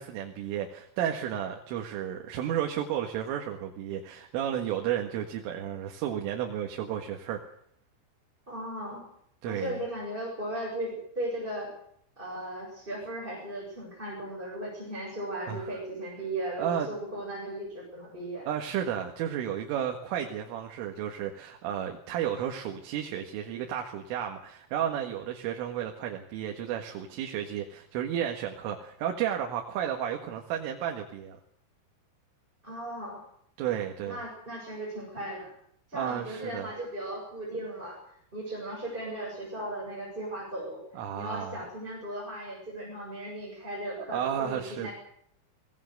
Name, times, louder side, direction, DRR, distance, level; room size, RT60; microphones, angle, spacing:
voice 1, 0.0-7.4 9.4-9.8 15.5-15.8 16.6-16.9 18.5-31.4 33.6-34.2 35.9-36.7 40.9-41.6 44.1-44.9, right 10 dB, 75° right, 2 dB, 4.3 m, -32 dB
voice 2, 8.5-9.0 9.4-11.7 12.2-18.5 32.6-33.2 34.0-35.5 35.9-37.9 38.3-40.8 41.1-44.9, right 1 dB, 10° right, -3 dB, 7.2 m, -37 dB
24.0 x 20.5 x 6.7 m, 0.69 s
omnidirectional pair, 5.9 m